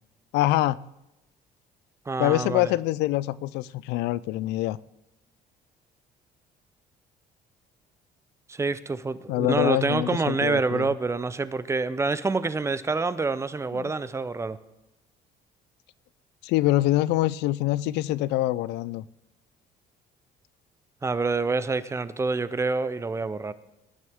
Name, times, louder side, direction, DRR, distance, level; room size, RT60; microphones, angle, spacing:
voice 1, 0.3-0.8 2.2-4.8 9.3-10.9 13.7-13.9 16.4-19.0, left 16 dB, 85° left, 20 dB, 0.4 m, -25 dB
voice 2, 2.1-2.7 8.5-14.6 21.0-23.5, right 3 dB, 15° right, 15 dB, 0.6 m, -27 dB
19.0 x 9.6 x 3.6 m, 0.92 s
cardioid pair, 110°, 17 cm